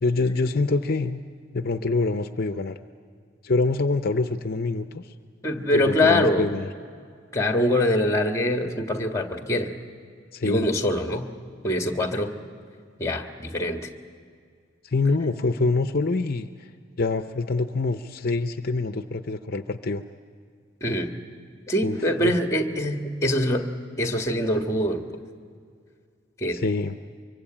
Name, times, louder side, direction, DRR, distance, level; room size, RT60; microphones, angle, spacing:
voice 1, 0.0-1.2 1.5-2.8 3.4-5.1 5.7-6.7 10.3-10.8 14.8-16.7 17.0-20.0 21.8-22.4 26.5-27.0, left 3 dB, 50° left, 8 dB, 0.7 m, -25 dB
voice 2, 5.4-6.5 7.3-9.7 10.4-11.3 11.6-12.3 13.0-13.9 20.8-21.2 21.7-23.7 24.0-25.0 26.4-26.6, left 1 dB, 15° left, 4 dB, 1.6 m, -24 dB
24.5 x 23.5 x 8.8 m, 2.2 s
head